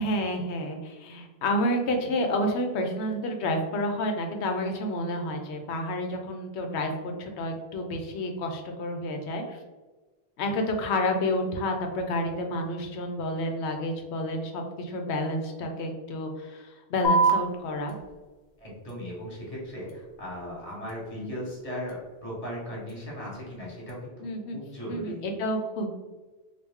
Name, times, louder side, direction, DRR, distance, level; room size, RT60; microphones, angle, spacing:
voice 1, 0.0-9.6 10.4-17.9 21.2-21.3 24.2-24.6 24.9-25.9, left 1 dB, 85° left, 4 dB, 0.9 m, -30 dB
sound 1, 17.0-24.0, right 3 dB, 55° left, 0.6 m, -32 dB
voice 2, 18.6-24.1 24.5-25.2, equal, 35° left, -4 dB, 1.2 m, -37 dB
3.2 x 2.3 x 3.4 m, 1.2 s
omnidirectional pair, 1.1 m